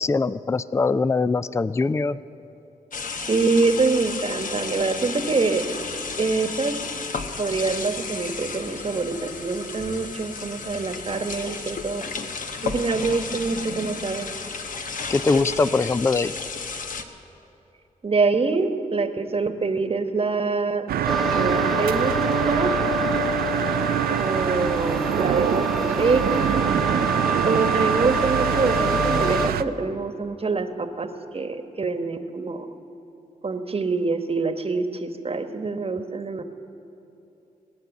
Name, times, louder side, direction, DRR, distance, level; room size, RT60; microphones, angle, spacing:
voice 1, 0.0-2.2 15.1-16.3, left 4 dB, 20° left, 16 dB, 0.4 m, -22 dB
sound 1, 2.9-17.0, left 4 dB, 60° left, 1.0 m, -33 dB
voice 2, 3.3-5.6 6.2-6.8 7.4-12.0 12.6-14.3 18.0-20.9 21.4-22.7 24.1-26.7 27.4-31.1 31.3-32.7 33.4-36.4, right 4 dB, 40° right, 8 dB, 1.2 m, -25 dB
sound 2, 20.9-29.6, right 10 dB, 90° right, 0.4 m, -25 dB
sound 3, 21.1-29.5, equal, ahead, 0.9 m, -27 dB
20.0 x 9.6 x 7.2 m, 2.9 s
cardioid pair, 60°, 15 cm